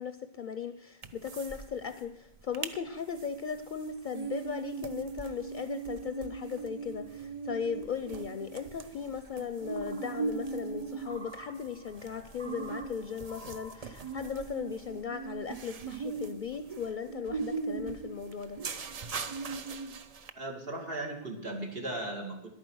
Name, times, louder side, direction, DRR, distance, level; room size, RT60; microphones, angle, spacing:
voice 1, 0.0-18.6, left 6 dB, 55° left, 9 dB, 0.7 m, -37 dB
sound 1, 1.0-1.6 1.9-2.0 2.4-2.8 3.2-20.3, right 4 dB, 45° right, 0.6 m, -39 dB
sound 2, 9.6-14.8, right 1 dB, 10° left, 0.4 m, -51 dB
voice 2, 20.3-22.5, right 2 dB, 65° right, 2 dB, 2.1 m, -37 dB
11.5 x 8.8 x 6.2 m, 0.87 s
omnidirectional pair, 1.0 m